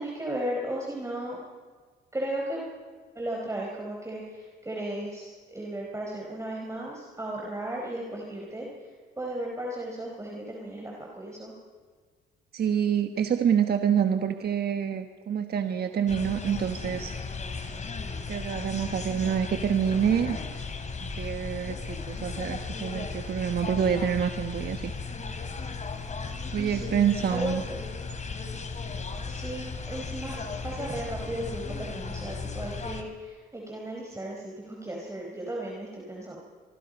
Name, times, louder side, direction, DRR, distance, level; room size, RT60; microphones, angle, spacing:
voice 1, 0.0-1.4 2.1-2.6 3.1-8.9 9.2-11.5 26.6-27.8 29.3-30.4 30.6-36.4, right 1 dB, 15° right, -1 dB, 4.7 m, -35 dB
voice 2, 12.5-17.1 18.3-20.4 21.0-24.9 26.5-27.6, right 8 dB, 55° right, 6 dB, 1.3 m, -27 dB
sound 1, 16.1-33.0, left 4 dB, 35° left, 2.9 m, -36 dB
25.0 x 23.5 x 5.4 m, 1.5 s
cardioid pair, 90°, 20 cm